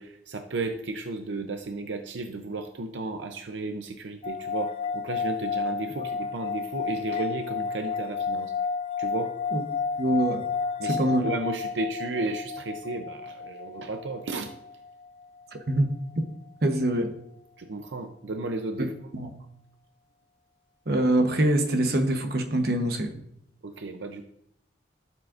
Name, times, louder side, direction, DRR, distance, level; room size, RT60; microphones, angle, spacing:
voice 1, 0.0-8.5 9.0-9.3 10.8-14.5 17.6-18.9 23.6-24.2, right 2 dB, 80° right, 5 dB, 0.6 m, -33 dB
sound 1, 4.2-15.6, left 5 dB, 30° left, 0.4 m, -32 dB
voice 2, 10.0-10.4 10.8-11.3 15.7-15.9 16.6-17.1 18.8-19.3 20.9-23.1, right 1 dB, 55° right, 5 dB, 1.0 m, -24 dB
12.5 x 7.4 x 2.5 m, 0.73 s
head